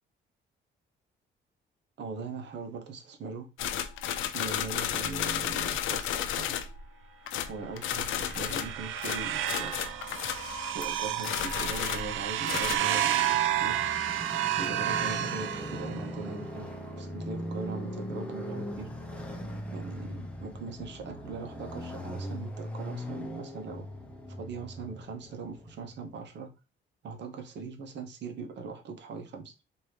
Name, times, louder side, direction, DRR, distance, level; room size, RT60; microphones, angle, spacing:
voice 1, 2.0-3.5 4.2-6.6 7.5-9.9 10.7-13.8 14.6-16.7 17.0-18.9 19.7-23.9 24.4-26.5 27.0-29.6, right 4 dB, 60° right, 0.9 m, -40 dB
sound 1, 3.6-6.9 7.3-10.9 11.2-12.8, left 10 dB, 80° left, 0.4 m, -32 dB
sound 2, 7.9-16.2, right 11 dB, 80° right, 0.4 m, -31 dB
Motorcycle, 8.3-26.1, equal, 5° left, 0.8 m, -41 dB
2.9 x 2.6 x 3.3 m
cardioid pair, 90°, 20 cm